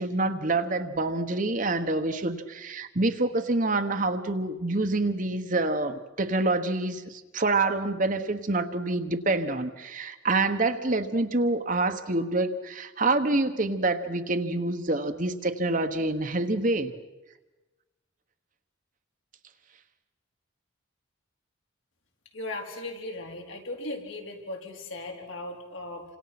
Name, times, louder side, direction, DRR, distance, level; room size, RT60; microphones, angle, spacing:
voice 1, 0.0-16.9, right 2 dB, 40° right, 7 dB, 1.3 m, -27 dB
voice 2, 22.3-26.0, left 2 dB, 70° left, 1 dB, 4.1 m, -37 dB
29.0 x 26.5 x 6.0 m, 1.1 s
head